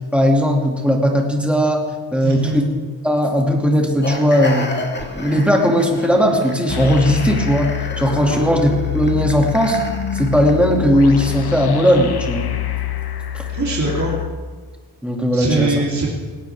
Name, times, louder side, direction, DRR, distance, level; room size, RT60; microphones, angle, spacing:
voice 1, 0.1-1.8 2.1-2.7 3.0-4.7 5.2-7.7 8.0-9.8 10.1-12.5 13.3-13.4 15.0-15.8, equal, ahead, 0 dB, 2.4 m, -17 dB
voice 2, 2.2-2.6 13.5-14.1 15.3-16.1, right 3 dB, 35° right, -4 dB, 3.3 m, -22 dB
sound 1, 4.0-10.8, left 1 dB, 20° left, 2.0 m, -31 dB
sound 2, 6.7-14.3, left 11 dB, 50° left, 1.0 m, -26 dB
18.5 x 18.0 x 3.5 m, 1.4 s
wide cardioid pair, 135°, 49 cm